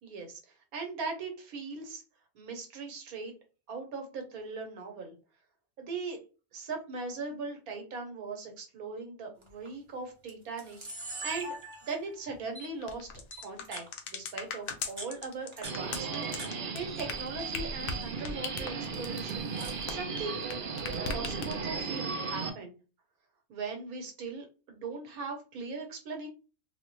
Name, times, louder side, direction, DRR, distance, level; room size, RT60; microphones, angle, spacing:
voice 1, 0.0-2.0 2.3-3.3 3.7-5.1 5.8-6.2 6.5-11.6 11.9-13.1 13.4-19.5 19.9-20.4 21.1-22.8 23.5-26.3, right 4 dB, 85° right, 3 dB, 1.4 m, -39 dB
Camera, 9.4-9.7 10.3-10.4 10.6-12.1 12.6-12.7 13.3-13.9 14.7-16.5 16.8-17.5 17.8-18.2 19.0-19.8, right 2 dB, 25° right, 0.9 m, -43 dB
sound 1, 12.8-20.5 20.8-21.8, left 5 dB, 75° left, 1.0 m, -38 dB
Subway metro underground, 15.6-22.5, right 5 dB, 50° right, 0.6 m, -36 dB
3.9 x 2.1 x 3.0 m, 0.34 s
omnidirectional pair, 1.5 m